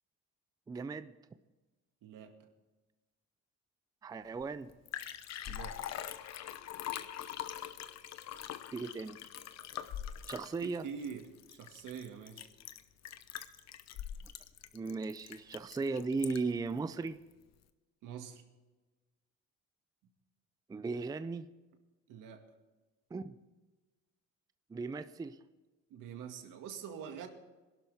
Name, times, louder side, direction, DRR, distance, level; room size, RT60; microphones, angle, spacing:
voice 1, 0.7-1.1 4.0-4.7 8.7-9.2 10.3-10.8 14.7-17.2 20.7-21.5 23.1-23.4 24.7-25.4, right 4 dB, 10° right, 12 dB, 0.4 m, -36 dB
voice 2, 2.0-2.3 5.5-5.8 10.6-12.5 18.0-18.4 22.1-22.4 25.9-27.3, right 7 dB, 80° right, 5 dB, 2.0 m, -45 dB
Liquid, 4.4-4.5 4.7-16.6 17.1-17.2, left 10 dB, 55° left, 0.9 m, -43 dB
21.5 x 12.0 x 3.5 m, 1.2 s
cardioid pair, 145°, 31 cm